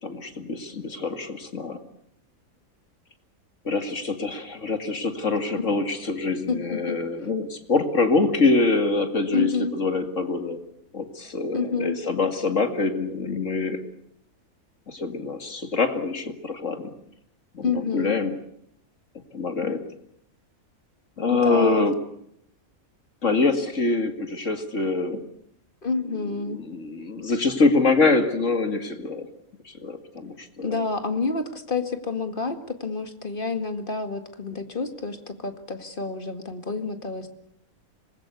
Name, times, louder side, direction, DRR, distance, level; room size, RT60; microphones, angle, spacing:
voice 1, 0.0-1.8 3.6-10.6 10.9-13.8 14.9-16.9 17.5-18.3 19.3-19.8 21.2-22.0 23.2-25.2 26.4-29.3 29.7-30.9, left 3 dB, 55° left, 7 dB, 2.5 m, -25 dB
voice 2, 6.5-7.0 9.3-9.7 11.5-12.0 17.6-18.2 21.3-21.9 25.8-26.6 30.6-37.3, left 4 dB, 35° left, 8 dB, 2.2 m, -28 dB
26.0 x 20.5 x 8.3 m, 0.75 s
omnidirectional pair, 1.5 m